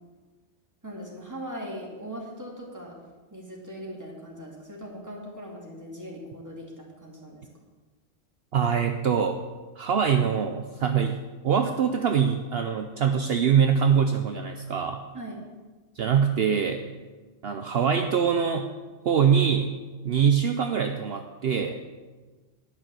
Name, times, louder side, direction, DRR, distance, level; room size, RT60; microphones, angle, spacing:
voice 1, 0.8-3.0 3.3-7.5 15.1-15.4, equal, 15° right, -3 dB, 2.5 m, -40 dB
voice 2, 8.5-9.4 9.8-15.0 16.0-16.8 17.4-18.7 19.0-19.7 20.0-21.8, right 7 dB, 60° right, 5 dB, 0.8 m, -23 dB
11.0 x 6.4 x 7.5 m, 1.3 s
omnidirectional pair, 1.3 m